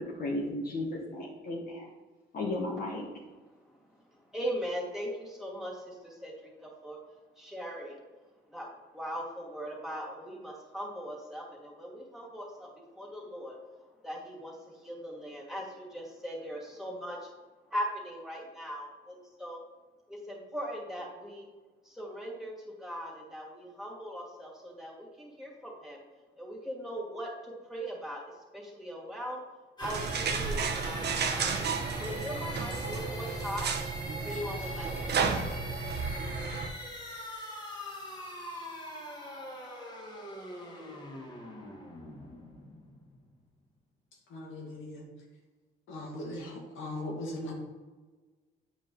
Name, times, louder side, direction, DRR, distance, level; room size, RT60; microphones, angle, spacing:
voice 1, 0.0-1.8 2.3-3.0, left 2 dB, 50° left, -4 dB, 1.3 m, -34 dB
voice 2, 4.1-7.0 7.4-8.0 8.5-8.7 8.9-12.7 12.9-13.6 14.0-17.3 17.7-19.6 20.1-21.5 21.8-26.0 26.4-29.4 29.8-31.7 31.9-33.8 34.2-35.4, equal, ahead, -4 dB, 2.4 m, -40 dB
sound 1, 29.8-43.5, left 1 dB, 20° left, 1.8 m, -43 dB
sound 2, 29.8-36.7, right 5 dB, 55° right, 0.9 m, -32 dB
voice 3, 44.3-45.1 45.9-47.5, left 1 dB, 80° left, -2 dB, 2.1 m, -39 dB
8.7 x 5.1 x 3.9 m, 1.3 s
cardioid pair, 90°, 20 cm